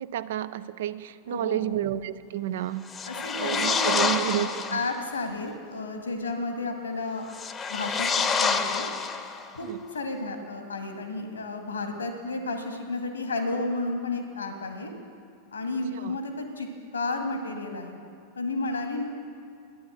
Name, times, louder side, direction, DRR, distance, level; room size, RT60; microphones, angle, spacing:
voice 1, 0.0-2.8 3.4-4.8 9.6-9.8 15.9-16.2, right 12 dB, 55° right, 15 dB, 0.4 m, -30 dB
voice 2, 1.3-1.9 3.0-7.3 7.7-8.9 9.5-14.9 15.5-16.7 16.9-18.0 18.3-19.0, left 2 dB, 75° left, 5 dB, 1.5 m, -32 dB
sound 1, 2.8-4.9 7.3-9.6, left 5 dB, 20° left, 0.8 m, -27 dB
11.5 x 9.5 x 8.1 m, 2.5 s
figure-of-eight pair, 90°, 0 cm